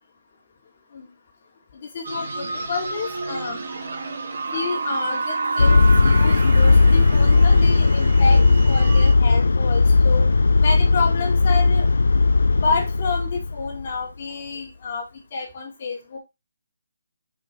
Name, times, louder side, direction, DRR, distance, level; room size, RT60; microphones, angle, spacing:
voice 1, 1.9-3.6 4.5-10.3 10.6-11.9 12.6-15.0 15.3-16.2, left 4 dB, 35° left, 1 dB, 2.1 m, -29 dB
sound 1, 2.0-9.1, right 3 dB, 70° right, 2.1 m, -30 dB
sound 2, 5.6-13.9, left 3 dB, 90° left, 0.5 m, -17 dB
5.2 x 4.3 x 4.3 m, 0.22 s
hypercardioid pair, 170°, 0 cm